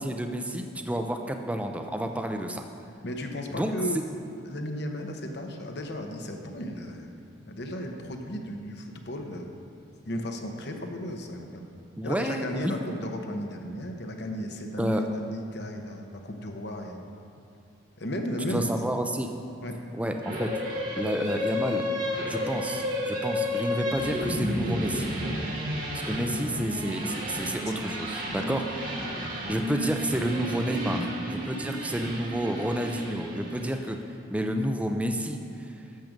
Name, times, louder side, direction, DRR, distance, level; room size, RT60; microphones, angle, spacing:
voice 1, 0.0-2.6 3.5-3.7 12.0-12.8 14.8-15.0 18.4-19.3 20.0-20.5 21.0-21.8 22.3-25.1 25.9-28.6 29.5-34.0 34.3-35.4, equal, 5° right, 5 dB, 0.5 m, -30 dB
voice 2, 3.0-4.0 4.4-7.1 7.4-9.5 10.1-11.6 12.0-17.1 18.0-18.8 19.6-19.7 27.3-27.9 28.3-28.5 29.0-29.1, equal, 55° left, 3 dB, 1.0 m, -35 dB
sound 1, 20.2-33.8, left 1 dB, 45° right, 1.5 m, -32 dB
12.0 x 7.5 x 5.2 m, 2.6 s
head